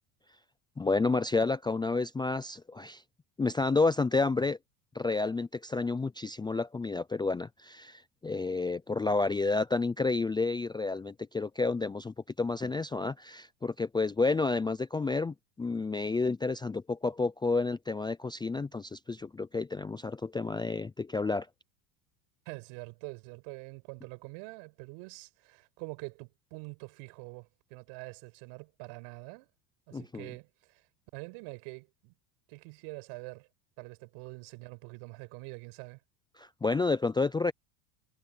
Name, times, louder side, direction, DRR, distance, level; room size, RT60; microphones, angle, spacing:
voice 1, 0.8-3.0 3.4-4.6 4.9-21.5 29.9-30.3 36.4-37.5, left 3 dB, 10° left, 0.5 m, -30 dB
voice 2, 22.5-29.5 29.9-30.9 31.1-32.1 32.5-33.5 33.8-36.0, right 31 dB, 70° right, 5.6 m, -45 dB
supercardioid pair, 110°, 49 cm